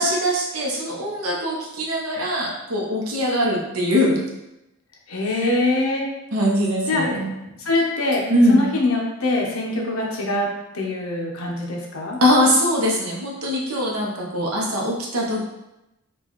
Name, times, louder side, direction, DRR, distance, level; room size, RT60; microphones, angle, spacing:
voice 1, 0.0-4.2 5.4-5.6 6.3-7.3 8.3-8.7 12.2-15.4, equal, 80° right, -2 dB, 0.9 m, -21 dB
voice 2, 5.1-6.1 6.9-7.0 7.6-10.5 10.7-12.2, left 2 dB, 75° left, -1 dB, 0.8 m, -23 dB
4.4 x 2.4 x 3.0 m, 0.93 s
head